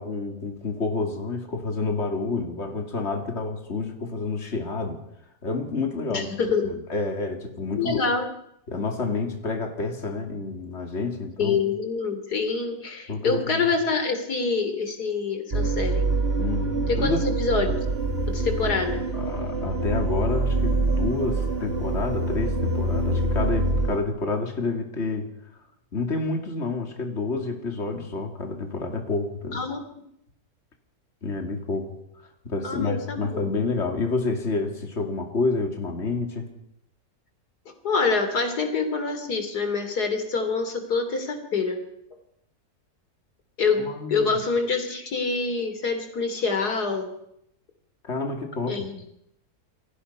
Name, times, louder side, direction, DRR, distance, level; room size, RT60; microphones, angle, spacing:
voice 1, 0.0-5.0 5.4-6.3 6.6-8.0 8.7-11.6 13.1-13.7 16.3-17.2 19.1-25.3 25.9-29.6 31.2-32.0 32.4-36.5 43.8-44.3 48.0-48.8, left 3 dB, 45° left, 4 dB, 2.9 m, -29 dB
voice 2, 6.1-6.8 7.8-8.3 11.4-16.0 16.9-17.8 18.3-19.0 29.5-29.8 32.6-33.5 37.8-41.8 43.6-47.1 48.7-49.0, left 4 dB, 85° left, 7 dB, 3.5 m, -26 dB
sound 1, 15.5-24.0, right 2 dB, 40° right, 2.4 m, -25 dB
28.0 x 22.5 x 5.6 m, 0.77 s
omnidirectional pair, 1.6 m